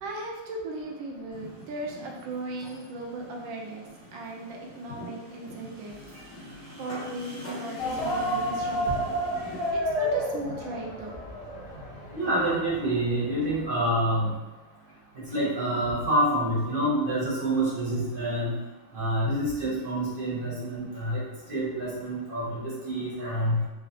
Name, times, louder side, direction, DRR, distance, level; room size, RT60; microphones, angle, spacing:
voice 1, 0.0-6.0 6.3-9.1 9.4-11.2, right 2 dB, 90° right, -1 dB, 1.4 m, -37 dB
sound 1, 1.3-9.7, left 1 dB, 35° left, 1.3 m, -44 dB
sound 2, 7.8-13.7, equal, 65° left, 1.4 m, -31 dB
voice 2, 12.1-14.3 15.3-18.5 18.9-21.2 21.5-23.6, right 1 dB, 40° right, -8 dB, 0.9 m, -27 dB
3.9 x 2.0 x 2.7 m, 1.1 s
omnidirectional pair, 2.1 m